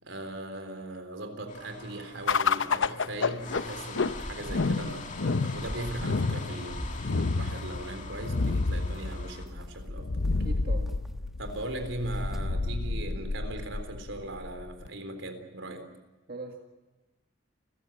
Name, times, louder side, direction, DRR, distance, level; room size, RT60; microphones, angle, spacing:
voice 1, 0.0-10.1 11.4-15.9, right 1 dB, 85° right, 7 dB, 3.8 m, -39 dB
sound 1, 1.5-9.5, left 4 dB, 40° left, 2.7 m, -44 dB
sound 2, 2.3-14.9, left 3 dB, 85° left, 0.8 m, -30 dB
sound 3, 3.7-12.5, equal, ahead, 1.4 m, -45 dB
voice 2, 10.4-11.0 16.3-16.6, right 2 dB, 50° right, 3 dB, 1.9 m, -40 dB
29.5 x 15.0 x 9.1 m, 1.1 s
head